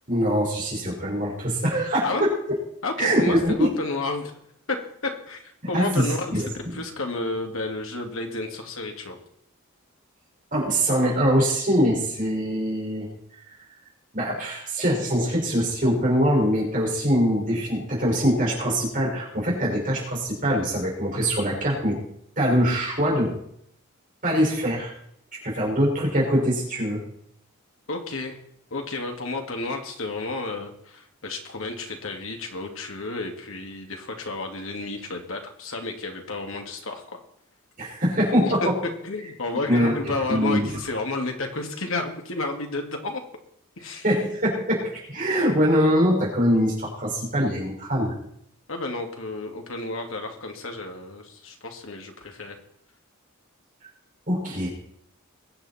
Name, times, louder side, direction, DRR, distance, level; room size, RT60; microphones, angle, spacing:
voice 1, 0.1-2.4 3.0-3.7 5.6-6.8 10.5-13.1 13.5-13.6 14.1-22.0 22.4-23.3 24.2-24.9 25.4-27.0 37.8-38.8 39.7-40.7 44.0-48.2 54.3-54.7, equal, 40° right, -3 dB, 5.5 m, -23 dB
voice 2, 2.8-4.3 4.7-9.2 27.9-28.4 28.7-37.2 38.4-38.7 39.0-43.2 43.8-44.0 48.7-52.6, left 2 dB, 70° left, 3 dB, 2.3 m, -31 dB
22.0 x 8.6 x 4.3 m, 0.71 s
head